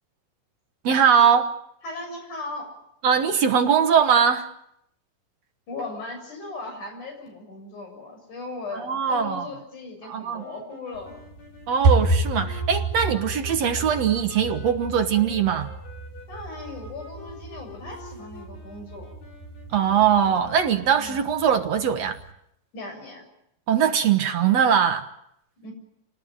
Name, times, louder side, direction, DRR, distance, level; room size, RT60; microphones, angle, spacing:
voice 1, 0.8-1.5 3.0-4.5 8.7-9.5 10.0-10.4 11.7-15.7 19.7-22.2 23.7-25.1, right 7 dB, 60° right, 6 dB, 2.2 m, -21 dB
voice 2, 1.8-2.7 5.7-11.1 16.3-19.1 21.0-21.2 22.7-23.3 25.6-25.7, left 3 dB, 60° left, 2 dB, 8.5 m, -37 dB
sound 1, 10.4-21.1, left 4 dB, 80° left, 7.2 m, -47 dB
sound 2, 10.9-22.3, right 3 dB, 75° right, 6.5 m, -30 dB
28.0 x 19.0 x 9.0 m, 0.76 s
omnidirectional pair, 3.9 m